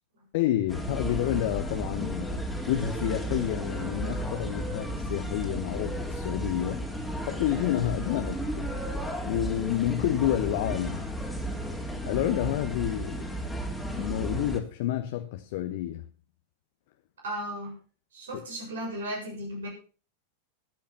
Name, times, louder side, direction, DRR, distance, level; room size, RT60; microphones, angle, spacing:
voice 1, 0.3-6.8 7.3-8.7 9.2-11.1 12.0-13.6 14.0-16.0, left 13 dB, 55° left, 1.2 m, -29 dB
sound 1, 0.7-14.6, right 1 dB, 5° left, 3.2 m, -33 dB
voice 2, 17.2-17.8 18.1-19.7, right 1 dB, 75° right, 7.3 m, -35 dB
14.0 x 9.5 x 5.5 m
figure-of-eight pair, 90°, 0 cm